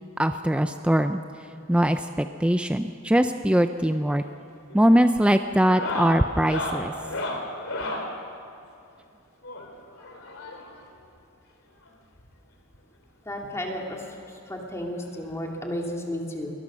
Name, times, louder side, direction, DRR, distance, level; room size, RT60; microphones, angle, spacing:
voice 1, 0.2-1.2 1.7-4.2 4.7-6.9, equal, 5° right, 8 dB, 0.4 m, -21 dB
sound 1, 4.1-4.4 4.7-5.0 5.6-8.1 9.4-10.8 11.9-12.0 12.2-12.3 12.7-12.8 14.1-14.2 15.6-15.7, left 2 dB, 70° left, 3.2 m, -33 dB
voice 2, 13.3-14.0 14.5-16.5, left 1 dB, 15° left, 0 dB, 2.5 m, -32 dB
23.0 x 19.0 x 6.2 m, 2.7 s
head